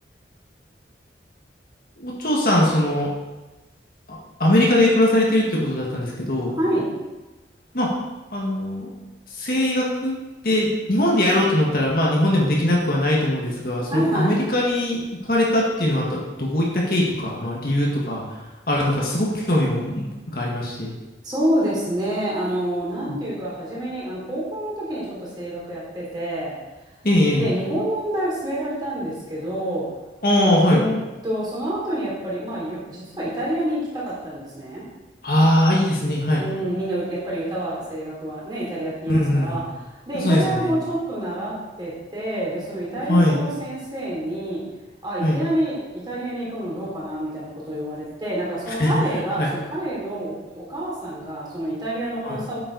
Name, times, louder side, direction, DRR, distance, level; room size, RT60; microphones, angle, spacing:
voice 1, 2.0-3.1 4.1-6.5 7.7-8.0 8.3-8.9 9.3-10.2 10.4-20.9 27.0-27.5 30.2-30.8 35.2-36.5 39.1-39.7 40.1-40.8 43.1-43.4 45.2-45.4 48.7-49.5 52.2-52.4, left 1 dB, 55° left, -3 dB, 1.8 m, -21 dB
voice 2, 6.5-6.9 13.9-14.4 21.2-26.6 27.4-29.9 30.3-30.9 31.2-34.8 36.4-39.6 40.0-44.6 45.0-49.4 49.7-52.6, right 1 dB, 25° right, -7 dB, 3.4 m, -27 dB
9.0 x 7.6 x 4.1 m, 1.1 s
head